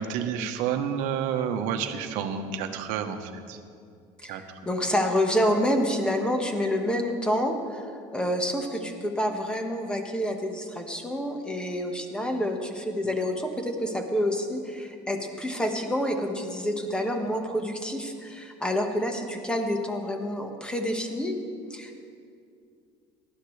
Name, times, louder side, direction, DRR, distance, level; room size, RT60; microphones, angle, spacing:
voice 1, 0.0-3.6 4.3-4.4, right 8 dB, 75° right, 7 dB, 1.1 m, -29 dB
voice 2, 4.2-21.3 21.7-22.0, equal, 5° left, 3 dB, 1.4 m, -28 dB
19.0 x 12.5 x 3.3 m, 2.4 s
cardioid pair, 130°, 13 cm